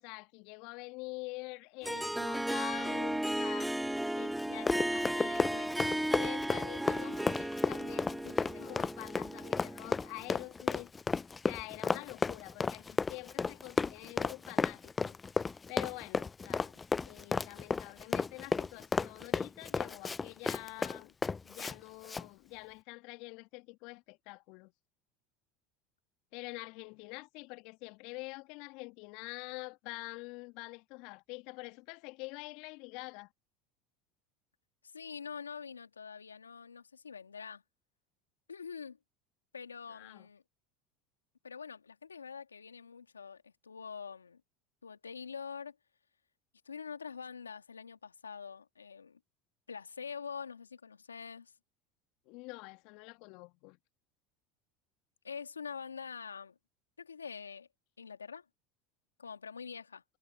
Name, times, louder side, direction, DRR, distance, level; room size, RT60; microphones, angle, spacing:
voice 1, 0.0-10.9 11.5-15.2 15.7-16.7 17.1-21.2 21.4-24.7 26.3-33.3 39.9-40.3 52.3-53.8, left 26 dB, 60° left, 1.9 m, -46 dB
Harp, 1.8-10.3, right 1 dB, 5° right, 0.9 m, -35 dB
Run, 4.4-21.7 22.0-22.2, left 4 dB, 20° left, 0.5 m, -33 dB
voice 2, 34.8-37.6 38.5-39.0 39.5-40.4 41.4-44.4 44.8-45.8 46.6-49.2 49.7-51.5 55.2-56.6 57.0-57.7 58.0-58.4 59.2-60.0, left 6 dB, 90° left, 2.1 m, -45 dB
hypercardioid pair, 75°, 0 cm